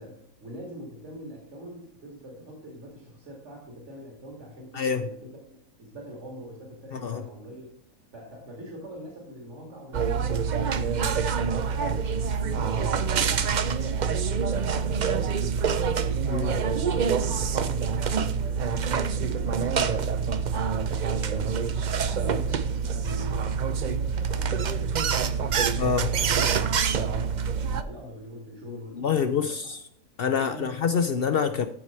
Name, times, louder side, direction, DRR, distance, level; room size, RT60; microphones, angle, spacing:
voice 1, 0.0-5.2 5.8-7.7 8.1-21.6 21.9-26.4 26.9-29.7 30.2-30.8, equal, 50° right, 0 dB, 2.4 m, -43 dB
voice 2, 4.7-5.1 6.9-7.2 16.3-16.5 25.8-26.1 28.7-29.8 30.2-31.7, left 6 dB, 70° left, 10 dB, 0.5 m, -26 dB
sound 1, 9.9-27.8, right 6 dB, 80° right, 0.4 m, -26 dB
13.5 x 4.8 x 4.3 m, 0.74 s
omnidirectional pair, 1.5 m